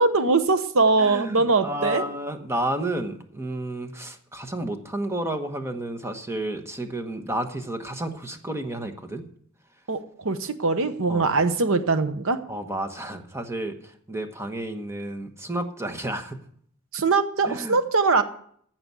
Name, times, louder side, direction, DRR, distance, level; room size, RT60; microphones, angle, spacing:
voice 1, 0.0-2.0 9.9-12.4 16.9-18.2, right 3 dB, 65° right, 10 dB, 0.9 m, -22 dB
voice 2, 1.0-9.2 11.1-11.3 12.5-16.4 17.4-17.8, right 1 dB, 10° right, 6 dB, 1.2 m, -31 dB
15.0 x 6.0 x 8.2 m, 0.63 s
head